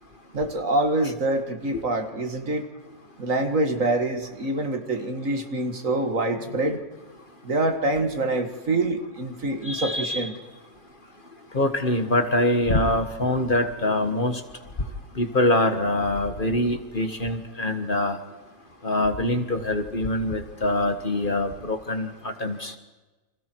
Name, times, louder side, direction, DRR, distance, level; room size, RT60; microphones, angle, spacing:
voice 1, 0.3-2.7 3.2-6.8 7.4-10.3, right 2 dB, 60° right, 6 dB, 2.4 m, -25 dB
voice 2, 9.7-10.3 11.5-14.4 15.2-18.2 18.8-22.1 22.4-22.7, left 1 dB, 35° left, 7 dB, 1.7 m, -24 dB
30.0 x 26.0 x 4.7 m, 1.2 s
omnidirectional pair, 1.5 m